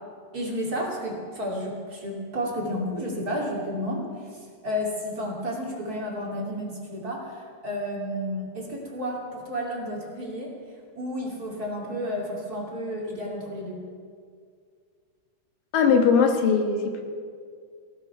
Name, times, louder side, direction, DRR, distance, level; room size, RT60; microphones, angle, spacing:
voice 1, 0.3-10.6 11.0-13.8, equal, 30° right, -2 dB, 2.7 m, -31 dB
voice 2, 15.7-17.0, left 5 dB, 90° left, 4 dB, 3.1 m, -20 dB
19.0 x 16.0 x 4.5 m, 2.1 s
omnidirectional pair, 3.8 m